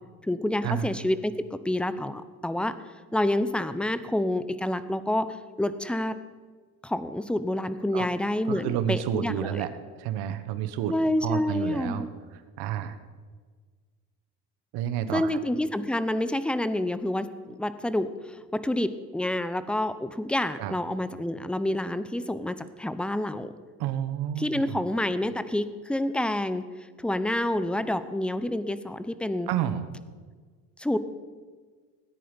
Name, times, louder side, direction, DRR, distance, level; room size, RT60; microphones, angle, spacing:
voice 1, 0.2-2.7 3.1-6.2 6.8-9.6 10.9-12.1 15.1-23.5 24.4-26.6 27.0-29.5 30.8-31.0, left 1 dB, 5° left, 13 dB, 0.7 m, -28 dB
voice 2, 8.5-10.9 11.2-12.1 12.3-13.0 14.7-15.3 20.6-20.7 23.8-24.8 29.5-29.9, right 10 dB, 80° right, 10 dB, 1.3 m, -30 dB
17.5 x 9.8 x 5.2 m, 1.5 s
cardioid pair, 105°, 39 cm